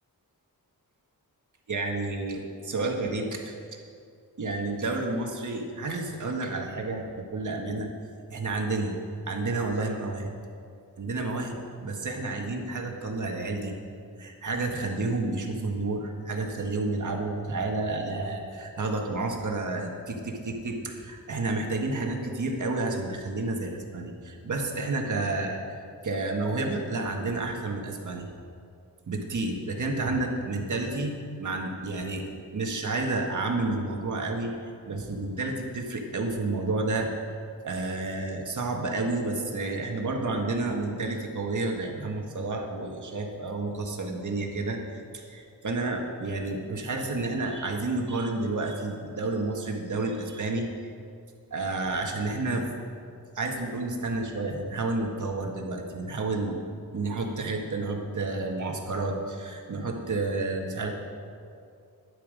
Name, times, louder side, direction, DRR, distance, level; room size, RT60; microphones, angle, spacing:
voice 1, 1.7-3.5 4.4-7.9 8.3-9.0 9.3-10.3 11.0-13.8 14.2-25.8 26.0-28.3 29.1-37.1 37.6-44.8 45.1-50.7 51.5-52.7 53.4-56.6 56.9-60.9, right 2 dB, 50° right, 1 dB, 1.7 m, -30 dB
12.5 x 10.0 x 5.2 m, 2.4 s
wide cardioid pair, 135°, 38 cm